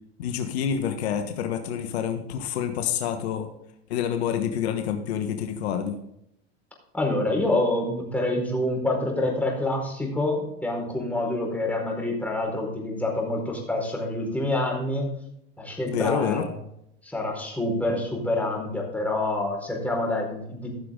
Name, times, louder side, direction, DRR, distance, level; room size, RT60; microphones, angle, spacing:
voice 1, 0.2-3.5 3.9-6.0 15.9-16.5, left 8 dB, 75° left, 7 dB, 1.3 m, -27 dB
voice 2, 6.9-15.1 15.6-16.5 17.0-20.7, left 1 dB, 5° left, -1 dB, 4.6 m, -27 dB
14.5 x 6.9 x 3.8 m, 0.76 s
hypercardioid pair, 95°, 32 cm